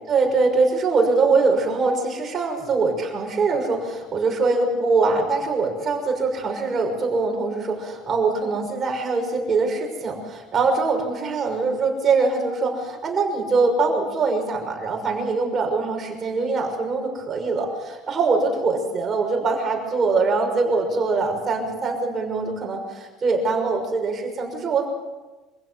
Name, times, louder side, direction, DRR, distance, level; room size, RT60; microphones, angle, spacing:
voice 1, 0.1-24.9, right 4 dB, 30° right, 2 dB, 6.1 m, -23 dB
25.5 x 16.0 x 8.0 m, 1.2 s
cardioid pair, 150°, 0 cm